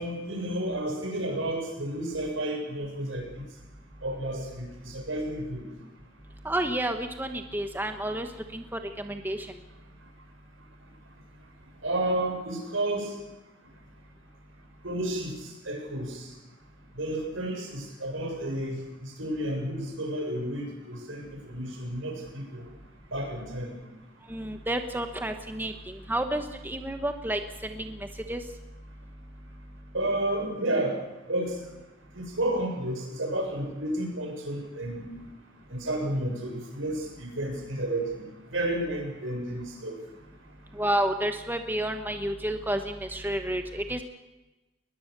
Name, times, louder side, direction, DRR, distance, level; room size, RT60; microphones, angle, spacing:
voice 1, 0.0-3.4 4.0-5.7 11.8-13.1 14.8-16.3 16.9-22.7 23.1-23.8 29.9-31.0 31.3-31.5 32.1-35.1 35.7-38.2 38.5-40.0, right 1 dB, 75° right, 2 dB, 6.8 m, -31 dB
voice 2, 6.4-8.3 8.5-9.5 24.3-28.4 40.7-44.0, right 1 dB, 10° right, 6 dB, 1.1 m, -30 dB
21.5 x 20.5 x 6.7 m, 1.1 s
head